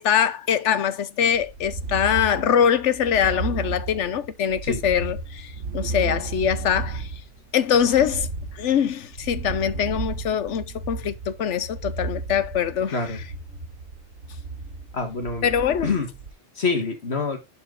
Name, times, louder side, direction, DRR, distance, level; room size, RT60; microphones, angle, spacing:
voice 1, 0.0-7.1 7.5-8.3 8.5-13.2 15.4-16.0, left 8 dB, 80° left, 1.1 m, -23 dB
sound 1, 1.3-16.3, right 3 dB, 80° right, 1.7 m, -34 dB
voice 2, 14.9-15.5 15.8-16.1 16.6-17.4, left 4 dB, 60° left, 1.9 m, -26 dB
11.0 x 4.6 x 3.8 m
omnidirectional pair, 1.2 m